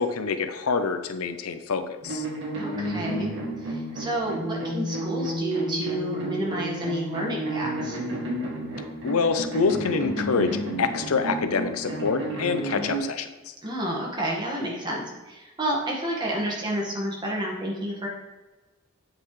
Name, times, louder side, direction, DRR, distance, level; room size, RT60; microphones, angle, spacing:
voice 1, 0.0-2.2 9.0-13.5, left 5 dB, 85° left, 9 dB, 0.6 m, -26 dB
sound 1, 2.0-13.0, right 1 dB, 55° right, 2.2 m, -31 dB
voice 2, 2.5-3.3 3.6-8.0 13.6-18.1, right 1 dB, 20° right, -2 dB, 1.5 m, -30 dB
7.9 x 5.9 x 3.2 m, 1.2 s
head